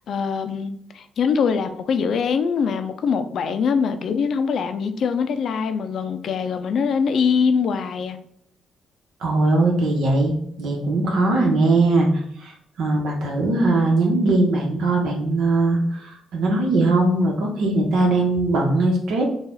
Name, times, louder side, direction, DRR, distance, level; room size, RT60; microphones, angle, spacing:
voice 1, 0.0-8.2, left 6 dB, 65° left, 9 dB, 0.4 m, -23 dB
voice 2, 9.2-19.2, right 2 dB, 80° right, 0 dB, 1.1 m, -20 dB
4.0 x 2.4 x 3.9 m, 0.70 s
cardioid pair, 90°, 0 cm